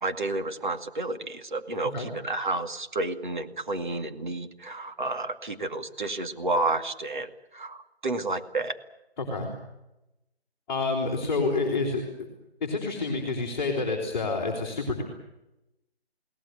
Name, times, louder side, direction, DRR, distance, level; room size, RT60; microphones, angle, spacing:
voice 1, 0.0-8.8, right 2 dB, 50° right, 7 dB, 2.3 m, -31 dB
voice 2, 9.2-9.5 10.7-12.0 12.6-15.0, left 3 dB, 10° left, -6 dB, 3.0 m, -28 dB
22.5 x 18.0 x 9.3 m, 0.91 s
figure-of-eight pair, 170°, 32 cm